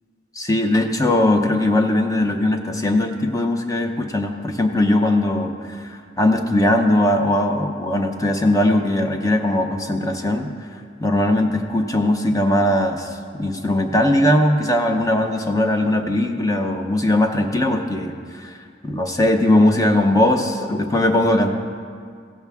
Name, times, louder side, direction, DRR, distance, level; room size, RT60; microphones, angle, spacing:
voice 1, 0.4-10.5 11.0-13.1 13.4-18.5 18.8-21.5, left 1 dB, 20° left, 4 dB, 0.6 m, -19 dB
16.0 x 7.0 x 3.5 m, 2.2 s
head